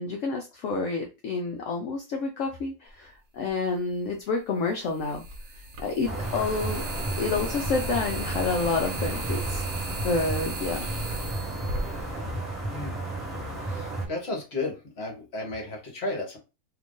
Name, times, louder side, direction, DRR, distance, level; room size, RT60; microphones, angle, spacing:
voice 1, 0.0-5.2 5.8-6.8 7.2-9.6 10.0-10.9, left 4 dB, 65° left, 2 dB, 0.8 m, -29 dB
sound 1, 3.5-3.6 4.9-12.8, right 1 dB, 55° right, 1.0 m, -36 dB
sound 2, 6.0-14.1, right 2 dB, ahead, 1.1 m, -33 dB
voice 2, 13.7-16.4, left 2 dB, 45° left, 1 dB, 1.2 m, -33 dB
2.9 x 2.5 x 3.6 m, 0.29 s
omnidirectional pair, 1.6 m